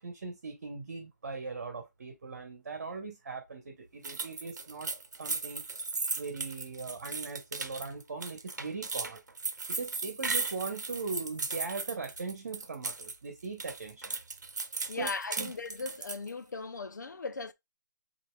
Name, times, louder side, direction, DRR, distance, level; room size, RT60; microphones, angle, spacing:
voice 1, 0.0-4.9 5.2-5.6 6.2-9.2 9.7-14.2 14.9-15.1 15.4-15.5, right 4 dB, 50° right, 1.2 m, -40 dB
sound 1, 4.0-13.1 13.4-16.3, right 4 dB, 70° right, 0.9 m, -36 dB
voice 2, 14.9-17.5, left 4 dB, 80° left, 0.7 m, -38 dB
7.6 x 2.8 x 2.3 m
hypercardioid pair, 170°, 10 cm